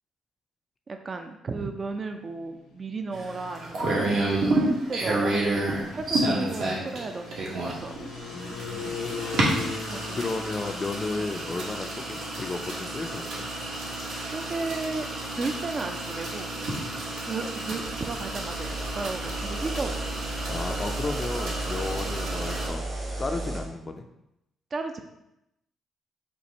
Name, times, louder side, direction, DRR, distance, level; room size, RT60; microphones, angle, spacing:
voice 1, 0.9-8.1 9.9-10.3 14.3-15.1 15.4-16.7 17.2-20.2 22.0-22.2 24.7-25.0, right 3 dB, 40° right, 6 dB, 0.4 m, -34 dB
sound 1, 2.2-20.2, left 5 dB, 90° left, 0.6 m, -43 dB
sound 2, 3.1-22.7, right 2 dB, 75° right, 1.2 m, -31 dB
voice 2, 8.3-9.0 10.2-13.4 20.5-22.8 23.2-24.0, left 3 dB, 30° left, 4 dB, 0.4 m, -33 dB
noise fi, 17.8-23.6, right 2 dB, 55° right, 1.6 m, -34 dB
4.4 x 2.5 x 4.1 m, 0.85 s
cardioid pair, 90°, 0 cm